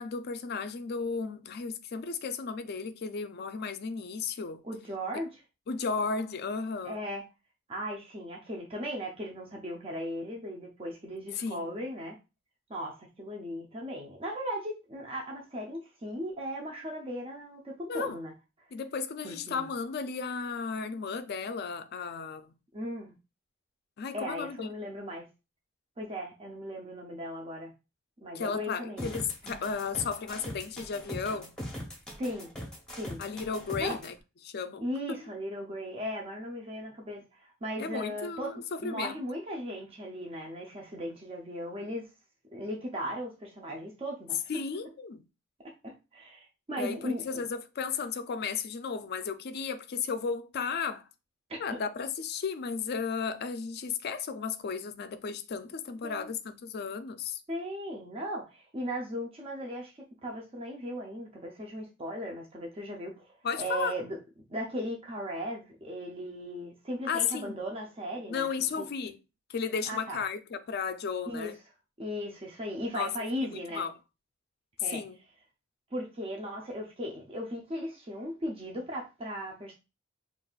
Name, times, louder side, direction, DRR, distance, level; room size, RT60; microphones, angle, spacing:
voice 1, 0.0-4.6 5.7-7.0 11.3-11.8 17.9-18.2 18.7-22.5 24.0-24.7 28.3-31.5 33.2-34.1 34.4-35.3 37.8-39.1 44.5-45.2 46.8-51.0 51.6-57.4 63.4-64.0 67.1-67.6 68.3-69.2 69.5-71.6 72.9-73.1 73.4-74.0 74.8-75.2, left 5 dB, 50° left, 0.4 m, -34 dB
voice 2, 4.6-5.3 6.8-7.2 7.7-12.2 12.7-18.3 19.2-19.7 22.7-23.1 24.1-25.3 26.0-27.7 28.2-29.1 29.4-29.6 32.2-32.5 33.0-33.2 33.8-34.0 34.8-38.5 38.8-42.1 42.5-44.4 45.6-47.4 51.5-51.6 56.0-56.3 57.5-59.9 60.2-64.2 64.5-68.5 69.9-70.2 71.2-71.5 72.0-73.8 74.8-75.0 75.9-79.7, equal, 30° right, 0.6 m, -37 dB
sound 1, 29.0-34.1, equal, 5° left, 0.9 m, -41 dB
5.3 x 2.4 x 2.4 m
head